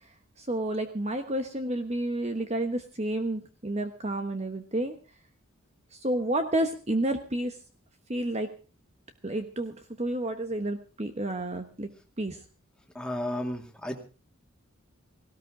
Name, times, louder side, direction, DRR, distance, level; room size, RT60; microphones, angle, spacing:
voice 1, 0.4-4.9 6.0-7.6 8.1-8.5 9.2-11.9 12.2-12.4, right 1 dB, 30° right, 6 dB, 1.1 m, -30 dB
voice 2, 12.9-14.0, left 1 dB, 5° left, 3 dB, 2.3 m, -33 dB
18.0 x 17.5 x 3.9 m, 0.35 s
head